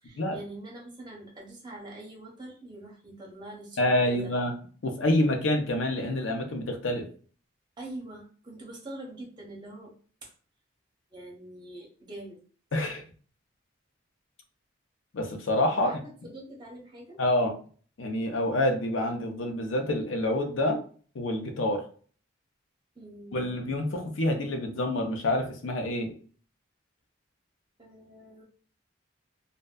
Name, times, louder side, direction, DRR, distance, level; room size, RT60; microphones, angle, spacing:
voice 1, 0.0-4.3 7.8-9.9 10.2-10.3 11.1-12.4 15.7-17.2 22.9-23.5 27.8-28.4, right 1 dB, 20° right, -3 dB, 0.7 m, -44 dB
voice 2, 3.8-4.5 4.8-7.1 12.7-13.0 15.1-16.0 17.2-17.5 18.0-20.8 21.1-21.8 23.3-26.1, left 1 dB, 80° left, 5 dB, 0.5 m, -27 dB
2.6 x 2.1 x 2.2 m, 0.42 s
head